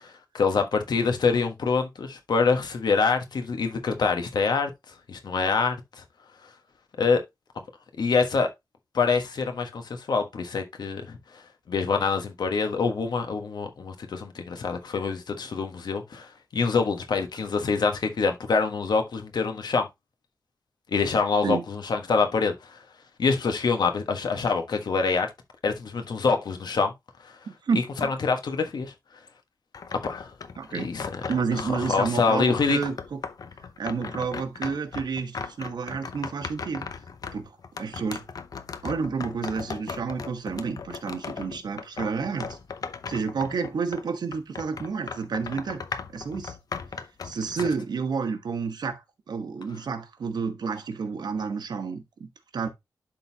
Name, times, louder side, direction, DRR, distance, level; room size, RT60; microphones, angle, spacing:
voice 1, 0.3-4.7 5.1-5.8 7.0-7.2 8.0-8.5 8.9-11.2 11.7-19.8 20.9-22.8 23.2-25.3 25.6-26.9 28.0-28.9 30.0-30.3 30.7-31.2 31.5-32.8 47.6-47.7, left 4 dB, 80° left, 1.3 m, -25 dB
voice 2, 27.5-28.1 30.6-30.9 31.3-33.2 33.8-36.9 37.3-38.2 38.8-42.6 43.1-45.8 46.1-46.6 47.2-49.0 49.3-52.7, right 5 dB, 85° right, 1.2 m, -30 dB
sound 1, 29.7-32.2 32.6-44.1 44.3-47.6, left 5 dB, 60° left, 0.6 m, -38 dB
11.5 x 3.9 x 2.8 m
wide cardioid pair, 155°, 7 cm